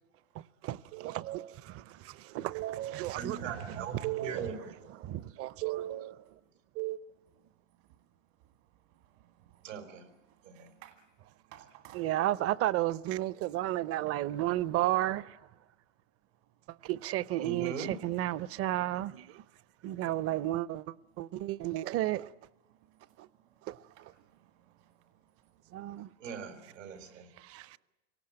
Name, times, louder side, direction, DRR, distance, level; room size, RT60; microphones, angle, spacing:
voice 1, 0.3-6.2 6.8-7.0 11.9-15.4 16.8-19.4 19.8-22.3 23.2-23.3 23.7-23.8 25.7-26.1 27.4-27.8, right 14 dB, 40° right, 0.7 m, -33 dB
voice 2, 3.2-4.5 9.6-10.1 10.4-10.7 17.4-17.9 26.2-27.3, right 6 dB, 90° right, 4.4 m, -40 dB
voice 3, 9.2-9.6 10.5-11.0 11.5-12.0 14.1-14.2 23.0-23.1 23.5-23.6 24.0-24.9, right 13 dB, 65° right, 1.9 m, -56 dB
26.0 x 18.0 x 8.9 m
hypercardioid pair, 110°, 37 cm